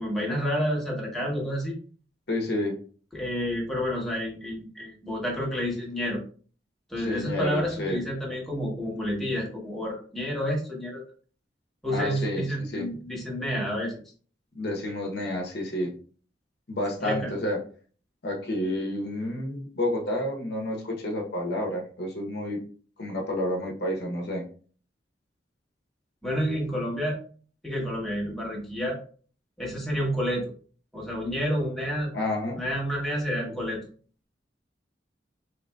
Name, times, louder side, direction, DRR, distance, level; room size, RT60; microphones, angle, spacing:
voice 1, 0.0-1.8 3.1-6.2 6.9-11.0 11.8-14.0 17.0-17.3 26.2-27.2 27.6-29.0 29.6-30.5 30.9-32.1 32.5-33.8, equal, ahead, -4 dB, 0.9 m, -29 dB
voice 2, 2.3-2.8 7.0-8.0 11.9-12.9 14.5-15.9 16.7-17.6 18.2-22.6 23.0-24.4 32.1-32.6 33.4-33.5, left 1 dB, 65° left, 1 dB, 0.8 m, -30 dB
3.8 x 2.9 x 2.2 m, 0.42 s
head